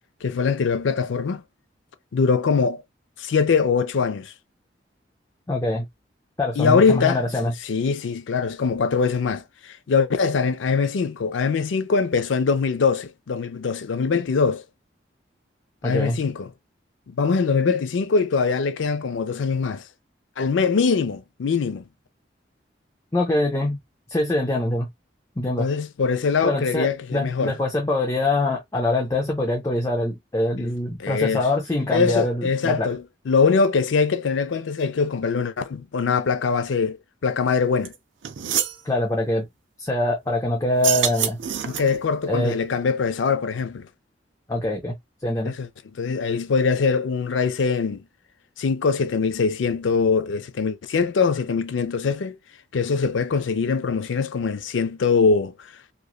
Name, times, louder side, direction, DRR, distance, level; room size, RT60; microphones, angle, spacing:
voice 1, 0.2-1.4 2.1-2.8 3.2-4.3 6.6-7.3 7.6-14.6 15.8-16.5 17.1-19.8 20.4-21.8 25.6-27.5 30.6-30.7 31.0-31.5 31.9-37.0 37.2-37.9 41.7-43.9 45.4-45.7 46.0-48.0 48.6-52.4 52.7-55.5, left 5 dB, 85° left, 0.4 m, -22 dB
voice 2, 5.5-5.9 6.4-7.5 15.8-16.2 23.1-23.8 24.1-24.9 25.4-25.7 26.4-32.9 38.8-39.5 39.8-41.4 42.3-42.5 44.5-44.9 45.2-45.5, left 1 dB, 15° left, 0.5 m, -24 dB
sound 1, 37.8-37.9 38.2-38.8 40.7-42.1, right 10 dB, 80° right, 0.4 m, -26 dB
3.0 x 2.5 x 2.3 m
head